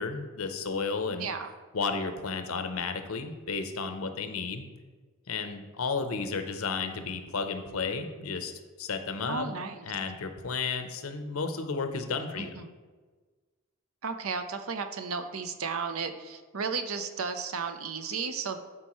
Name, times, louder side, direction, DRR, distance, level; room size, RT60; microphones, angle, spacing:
voice 1, 0.0-1.3 1.7-4.6 5.3-8.5 8.8-9.5 9.9-12.5, left 4 dB, 90° left, 8 dB, 0.7 m, -32 dB
voice 2, 1.2-1.5 9.3-9.9 12.4-12.7 14.0-18.6, right 5 dB, 90° right, 8 dB, 0.7 m, -34 dB
12.5 x 4.5 x 3.1 m, 1.4 s
head